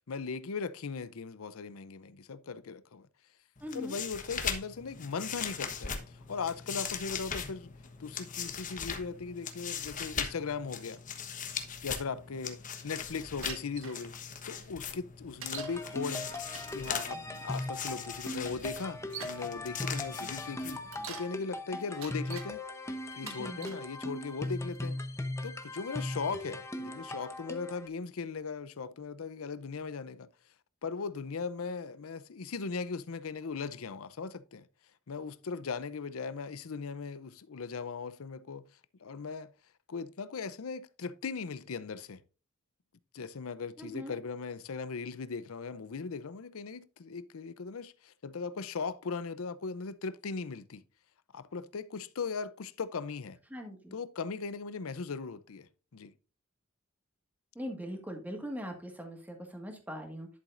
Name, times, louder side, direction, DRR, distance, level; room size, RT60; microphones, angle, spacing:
voice 1, 0.1-3.1 3.7-7.7 8.0-11.0 11.8-14.1 14.5-16.3 16.7-20.8 21.1-22.6 23.2-25.0 25.4-30.3 30.8-34.7 35.1-38.7 39.0-39.5 39.9-42.2 43.1-50.8 51.3-53.4 53.9-56.1, left 5 dB, 85° left, 0.6 m, -38 dB
sound 1, 3.6-21.2, left 7 dB, 40° left, 1.1 m, -40 dB
voice 2, 3.6-4.0 23.2-23.8 43.8-44.1 53.5-54.0 57.5-60.3, equal, 10° right, 1.7 m, -41 dB
Bicycle, 13.4-14.0 15.4-15.8 16.3-16.8 17.9-18.0 18.7-19.4 20.7-21.3 21.8-22.5 23.1-23.8 24.5-24.9, right 6 dB, 75° right, 1.8 m, -44 dB
sound 2, 15.6-27.9, left 1 dB, 15° left, 0.8 m, -39 dB
11.0 x 7.2 x 2.5 m
head